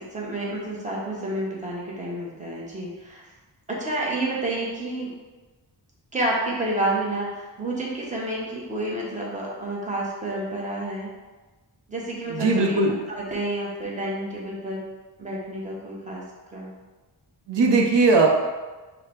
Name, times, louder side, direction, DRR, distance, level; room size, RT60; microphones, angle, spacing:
voice 1, 0.0-3.3 3.7-5.1 6.1-11.1 11.9-14.8 15.2-16.2 16.5-16.7, right 1 dB, 20° right, -4 dB, 0.8 m, -29 dB
voice 2, 12.3-12.9 17.5-18.3, right 3 dB, 90° right, 1 dB, 0.7 m, -19 dB
4.8 x 2.1 x 4.4 m, 1.2 s
wide cardioid pair, 170°, 41 cm